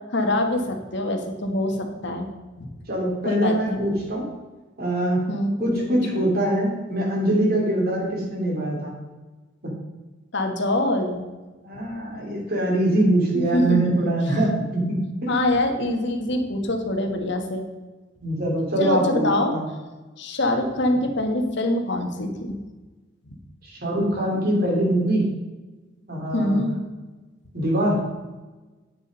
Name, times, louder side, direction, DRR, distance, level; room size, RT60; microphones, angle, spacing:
voice 1, 0.1-2.3 2.6-2.7 3.2-3.8 5.3-5.7 6.1-6.2 7.6-7.7 10.3-11.3 13.3-14.1 15.3-17.7 18.8-19.6 20.2-22.6 26.3-26.8, left 1 dB, 60° left, 4 dB, 1.5 m, -24 dB
voice 2, 2.9-4.2 4.8-5.3 5.6-8.9 9.6-9.7 11.6-15.3 18.2-19.6 23.6-25.3 26.1-26.6 27.5-28.0, right 1 dB, 50° right, -2 dB, 3.3 m, -23 dB
9.6 x 6.9 x 5.4 m, 1.2 s
head